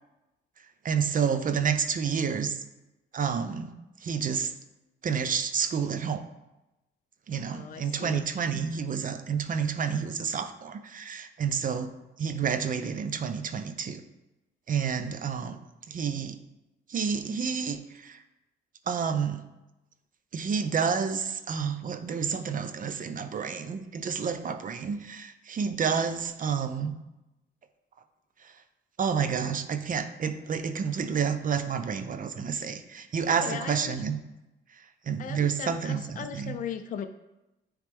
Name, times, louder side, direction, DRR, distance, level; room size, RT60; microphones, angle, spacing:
voice 1, 0.8-2.6 3.1-3.7 4.0-4.5 5.0-6.2 7.3-11.9 12.2-14.0 14.7-15.6 15.9-16.4 16.9-18.2 18.9-19.4 20.3-26.9 28.4-28.5 29.0-34.2 34.8-36.5, right 6 dB, 45° right, 10 dB, 0.6 m, -29 dB
voice 2, 7.5-8.2 8.5-8.6 33.4-34.0 35.2-37.1, left 8 dB, 40° left, 7 dB, 0.4 m, -38 dB
9.5 x 3.2 x 3.4 m, 0.98 s
cardioid pair, 90°, 20 cm